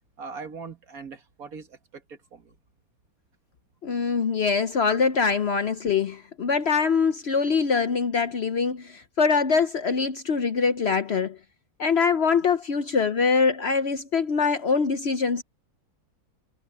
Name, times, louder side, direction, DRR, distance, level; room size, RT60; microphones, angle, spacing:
voice 1, 0.2-2.6, right 5 dB, 65° right, 2.3 m, -41 dB
voice 2, 3.8-11.4 11.8-15.4, left 5 dB, 50° left, 0.9 m, -23 dB
omnidirectional pair, 1.6 m